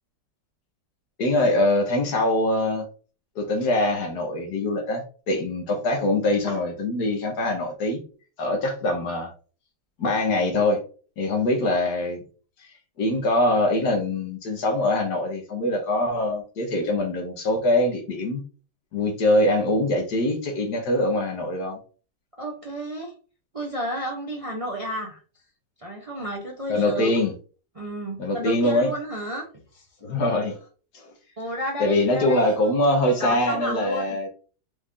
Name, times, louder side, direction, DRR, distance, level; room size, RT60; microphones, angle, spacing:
voice 1, 1.2-2.9 3.3-8.0 8.4-9.3 10.0-10.8 11.2-12.2 12.6-12.7 13.0-18.4 18.9-21.8 26.7-27.3 28.2-28.9 30.0-30.6 30.9-31.1 31.8-34.3, left 1 dB, 65° left, 3 dB, 1.6 m, -23 dB
voice 2, 22.4-23.1 23.5-25.2 25.8-27.2 27.8-29.5 29.7-29.8 31.4-32.5 33.2-34.2, right 1 dB, 40° right, 0 dB, 0.5 m, -31 dB
5.0 x 2.6 x 3.6 m, 0.39 s
omnidirectional pair, 1.9 m